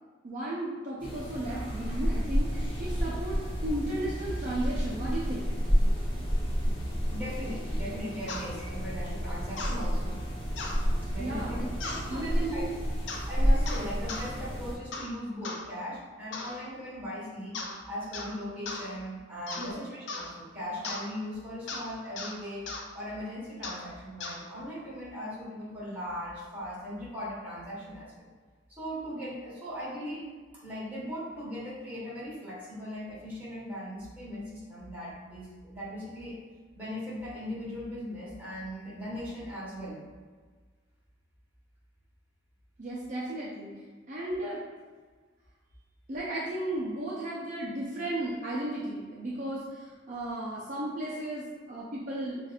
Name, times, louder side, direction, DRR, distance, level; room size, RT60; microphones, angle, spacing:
voice 1, 0.2-5.5 11.2-11.7 12.1-12.7 19.6-19.8 42.8-43.7 44.1-44.6 46.1-52.4, right 1 dB, 45° right, -7 dB, 0.6 m, -35 dB
sound 1, 1.0-14.8, equal, 30° left, 0.9 m, -30 dB
voice 2, 7.1-10.2 11.1-12.6 13.3-17.6 17.9-22.7 22.9-28.3 28.7-30.3 30.5-36.4 36.7-40.0, equal, 10° right, -9 dB, 1.4 m, -39 dB
sound 2, 8.3-8.5 9.6-9.8 10.6-10.8 11.8-12.1 13.1-13.3 13.7-14.3 14.9-15.1 15.4-15.6 16.3-16.6 17.5-17.8 18.1-18.4 18.7-18.9 19.5-19.7 20.1-20.3 20.8-21.1 21.7-21.9 22.2-22.3 22.7-22.8 23.6-23.8 24.2-24.4, left 3 dB, 75° left, 0.5 m, -37 dB
5.7 x 2.5 x 2.4 m, 1.5 s
head